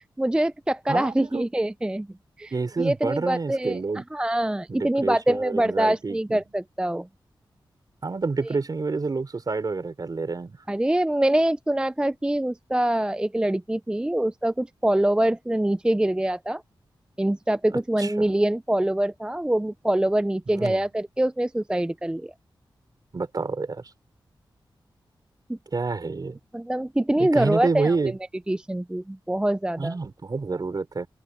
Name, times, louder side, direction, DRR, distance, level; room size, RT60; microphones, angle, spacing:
voice 1, 0.0-2.1 2.4-7.1 10.7-16.6 17.2-22.3 25.5-25.6 26.5-28.0 28.5-30.0, right 1 dB, 10° right, 0.4 m, -24 dB
voice 2, 0.9-1.5 2.5-4.0 4.7-6.4 8.0-10.6 18.0-18.3 20.5-20.8 23.1-23.8 25.7-26.4 27.2-28.2 29.8-31.1, right 4 dB, 50° right, 3.9 m, -28 dB
open air
wide cardioid pair, 85°, 9 cm